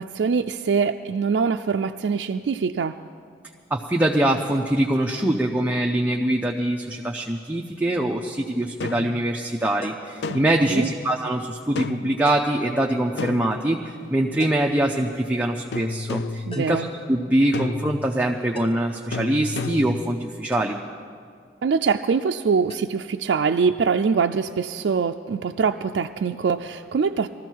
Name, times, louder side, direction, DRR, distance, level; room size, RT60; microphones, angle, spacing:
voice 1, 0.0-3.0 10.6-10.9 16.5-16.9 21.6-27.3, right 5 dB, 85° right, 5 dB, 0.4 m, -23 dB
voice 2, 3.7-20.8, right 1 dB, 10° right, -1 dB, 0.6 m, -23 dB
sound 1, 8.8-9.2 10.2-10.7 11.7-12.2 13.2-14.0 15.7-16.5 17.5-18.1 19.1-20.1, left 4 dB, 70° left, 0.4 m, -31 dB
sound 2, 9.8-10.2 12.3-12.7 14.4-14.8 16.5-16.9 18.5-19.0 20.5-20.8 22.7-22.9, left 2 dB, 30° left, 0.8 m, -40 dB
20.5 x 14.0 x 4.6 m, 2.2 s
head